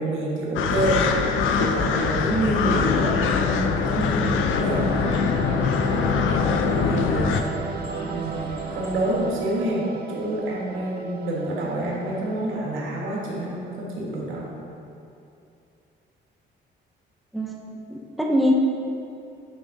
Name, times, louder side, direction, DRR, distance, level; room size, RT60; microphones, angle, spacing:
voice 1, 0.0-3.1 3.4-4.9 5.9-14.5, right 1 dB, 85° right, -4 dB, 1.5 m, -28 dB
sound 1, 0.6-7.4, left 6 dB, 85° left, 0.5 m, -23 dB
sound 2, 3.6-9.2, left 1 dB, 60° left, 1.6 m, -40 dB
sound 3, 4.7-12.6, right 6 dB, 55° right, 0.4 m, -35 dB
voice 2, 17.3-18.5, equal, ahead, -1 dB, 0.8 m, -24 dB
7.2 x 3.6 x 5.3 m, 2.7 s
cardioid pair, 90°, 20 cm